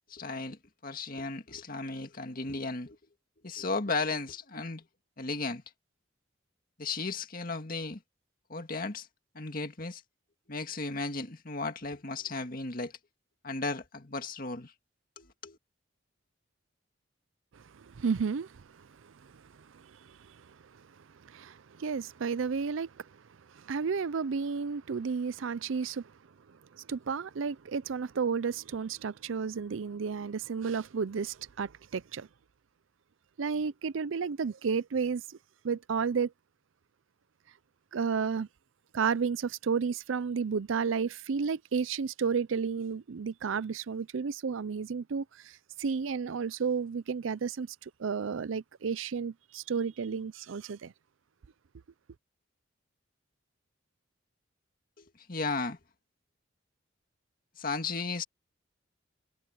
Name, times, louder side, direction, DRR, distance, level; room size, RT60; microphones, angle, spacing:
voice 1, 0.1-3.0 3.4-4.8 5.2-5.6 6.8-8.0 8.5-9.1 9.3-10.0 10.5-13.0 13.4-14.7 15.2-15.6 55.0-55.8 57.6-58.2, left 3 dB, 45° left, 2.0 m, -35 dB
voice 2, 17.5-19.4 19.7-20.6 21.2-23.1 23.5-26.1 26.7-32.3 33.4-35.4 35.6-36.3 37.9-38.5 38.9-50.9, right 5 dB, 75° right, 0.5 m, -32 dB
head